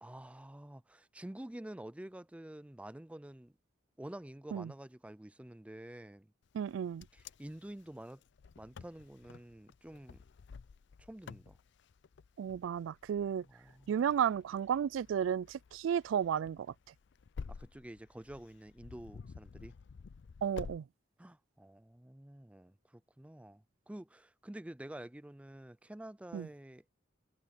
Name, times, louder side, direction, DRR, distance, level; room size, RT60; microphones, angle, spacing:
voice 1, 0.0-3.5 4.0-6.3 7.1-8.2 8.6-10.2 11.0-11.6 13.5-13.9 17.5-19.7 21.2-26.8, right 1 dB, 5° right, 0.4 m, -49 dB
voice 2, 6.5-7.1 12.4-13.4 13.9-16.7 20.4-20.8 26.3-26.5, right 8 dB, 75° right, 0.3 m, -33 dB
Wind, 6.6-20.8, left 5 dB, 65° left, 0.4 m, -51 dB
head